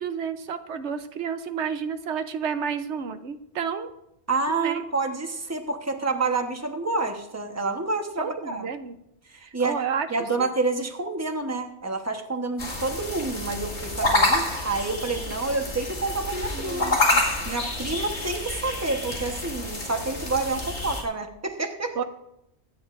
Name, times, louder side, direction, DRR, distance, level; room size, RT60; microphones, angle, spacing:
voice 1, 0.0-3.9 4.5-4.8 8.2-9.0 9.4-10.1 10.4-10.5 16.5-17.2 22.0-22.1, right 6 dB, 85° right, 9 dB, 1.1 m, -31 dB
voice 2, 4.3-8.7 9.5-9.8 10.1-16.9 17.5-22.0, right 3 dB, 15° right, 5 dB, 1.1 m, -28 dB
sound 1, 12.6-21.0, left 2 dB, 85° left, 2.4 m, -28 dB
24.0 x 9.7 x 2.6 m, 0.83 s
omnidirectional pair, 1.1 m